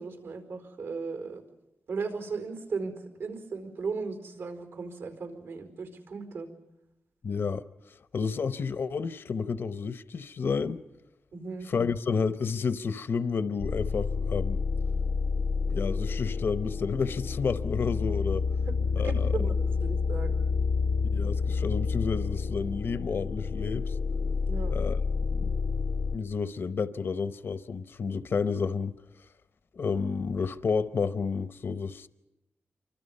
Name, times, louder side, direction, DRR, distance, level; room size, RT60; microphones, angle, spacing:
voice 1, 0.0-1.4 1.9-2.9 3.2-6.5 11.3-11.7 18.6-20.4 24.4-24.7, right 4 dB, 90° right, 4.6 m, -36 dB
voice 2, 7.2-7.6 8.1-10.8 11.7-14.6 15.7-18.4 18.9-19.3 21.1-24.0 24.7-25.0 25.3-25.5 26.1-28.9 29.7-32.1, left 5 dB, 60° left, 0.9 m, -30 dB
sound 1, 13.6-26.2, left 4 dB, 85° left, 0.9 m, -29 dB
28.5 x 24.5 x 5.5 m
wide cardioid pair, 105°, 4 cm